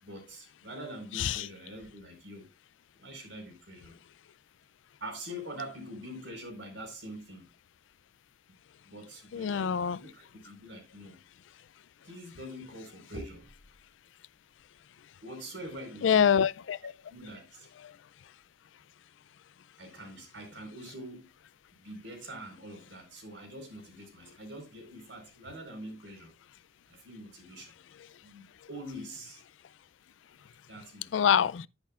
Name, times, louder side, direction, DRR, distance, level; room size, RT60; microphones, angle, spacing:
voice 1, 0.0-2.5 3.0-4.0 5.0-7.5 8.8-11.2 12.0-14.0 15.2-16.3 17.1-17.7 19.8-21.3 21.7-26.3 26.9-27.8 28.2-29.4 30.7-31.1, right 1 dB, 75° right, 4.4 m, -44 dB
voice 2, 9.3-10.0 16.0-16.9 31.1-31.7, left 8 dB, 80° left, 0.4 m, -25 dB
10.5 x 10.0 x 2.4 m
head